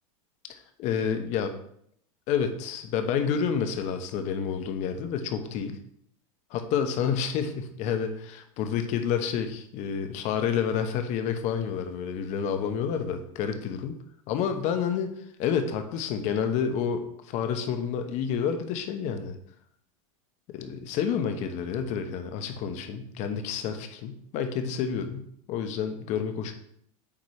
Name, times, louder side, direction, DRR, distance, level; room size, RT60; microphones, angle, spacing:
voice 1, 0.5-1.5 2.3-5.8 6.5-14.0 14.3-15.1 15.4-19.4 20.5-26.5, left 7 dB, 40° left, 7 dB, 0.9 m, -29 dB
8.5 x 2.9 x 4.9 m, 0.69 s
supercardioid pair, 140°, 18 cm